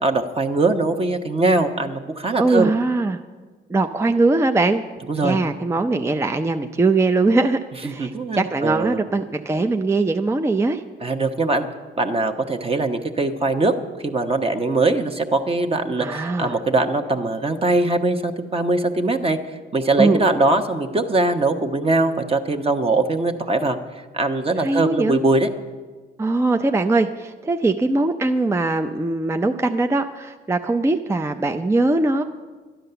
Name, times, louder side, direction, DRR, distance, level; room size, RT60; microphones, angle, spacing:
voice 1, 0.0-2.7 5.1-5.4 7.8-9.0 11.0-11.7 12.0-13.7 14.0-19.4 19.7-23.8 24.1-25.5, right 2 dB, 30° right, 6 dB, 1.0 m, -21 dB
voice 2, 2.4-3.2 3.7-4.8 5.2-10.8 16.0-16.6 20.0-20.2 24.6-25.2 26.2-32.2, right 3 dB, 15° right, 6 dB, 0.5 m, -21 dB
12.0 x 10.0 x 6.8 m, 1.4 s
cardioid pair, 90°, 20 cm